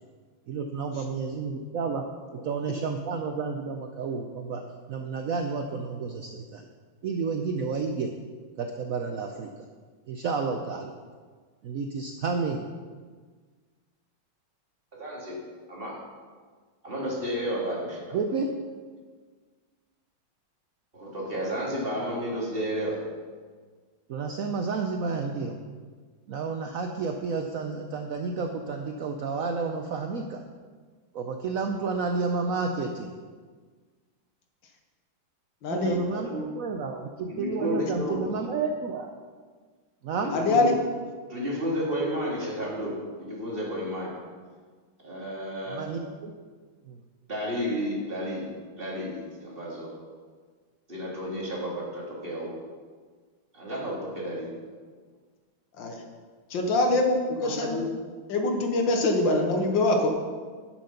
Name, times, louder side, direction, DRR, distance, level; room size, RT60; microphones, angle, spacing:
voice 1, 0.5-2.0 2.4-4.6 4.9-6.7 7.0-8.1 8.6-9.7 10.1-10.9 11.6-12.7 18.1-18.5 24.1-25.6 26.3-30.4 31.1-33.1 35.7-36.3 36.5-39.1 40.0-40.3 45.6-46.3 46.8-47.0, right 4 dB, 75° right, 4 dB, 0.7 m, -31 dB
voice 2, 14.9-15.4 15.7-16.0 16.8-18.0 18.3-18.4 20.9-23.0 35.7-36.4 37.3-38.4 40.2-40.7 41.3-44.1 45.0-45.8 47.3-48.5 48.8-50.0 50.9-52.5 53.5-54.8 57.4-57.8, equal, 25° right, -4 dB, 2.5 m, -32 dB
voice 3, 35.6-36.0 40.3-40.7 55.7-56.0 56.5-57.8 58.3-60.1, left 2 dB, 70° left, 3 dB, 1.8 m, -24 dB
10.0 x 7.5 x 5.8 m, 1.5 s
omnidirectional pair, 2.2 m